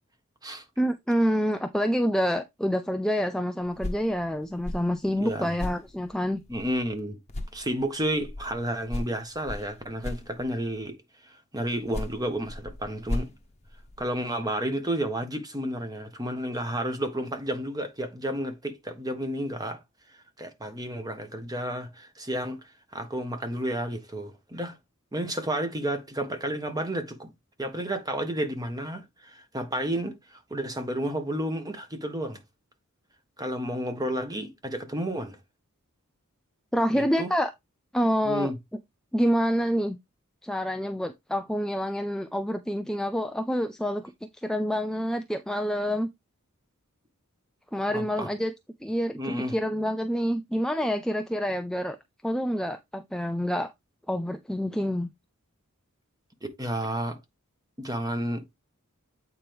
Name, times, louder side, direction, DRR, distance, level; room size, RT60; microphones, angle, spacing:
voice 1, 0.8-6.4 36.7-37.5 37.9-38.5 39.1-40.0 40.4-44.1 44.4-46.1 47.7-48.5 48.8-52.0 52.2-53.7 54.1-55.1, equal, 5° left, 0.4 m, -27 dB
sound 1, 3.6-7.0 7.3-10.8 11.7-14.3, left 1 dB, 30° left, 1.0 m, -38 dB
voice 2, 5.2-5.5 6.5-7.2 7.5-11.0 11.2-13.3 14.0-19.8 20.4-24.7 25.1-27.3 27.6-32.4 33.4-35.4 36.9-37.3 38.2-38.6 47.9-48.3 49.2-49.5 56.4-57.2 57.8-58.4, right 1 dB, 20° right, 1.4 m, -31 dB
8.6 x 4.5 x 3.4 m
head